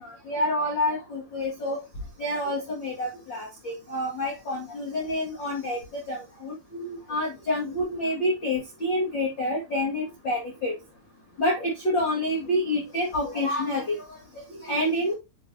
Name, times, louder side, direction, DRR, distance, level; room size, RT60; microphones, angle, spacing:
voice 1, 0.0-1.8 2.2-10.7 11.4-14.2 14.5-15.1, left 1 dB, 50° left, 1.4 m, -28 dB
6.9 x 6.4 x 2.7 m
omnidirectional pair, 5.3 m